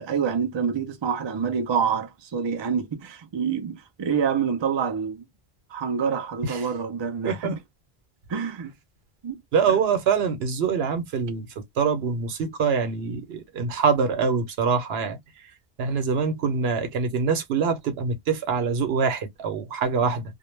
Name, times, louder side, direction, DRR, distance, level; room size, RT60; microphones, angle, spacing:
voice 1, 0.0-5.3 5.7-7.6 8.3-8.7 9.2-9.4, right 6 dB, 40° right, 0.4 m, -27 dB
voice 2, 7.2-7.6 9.5-11.5 11.8-15.2 15.8-20.2, right 5 dB, 80° right, 0.9 m, -24 dB
2.2 x 2.1 x 3.1 m
omnidirectional pair, 1.0 m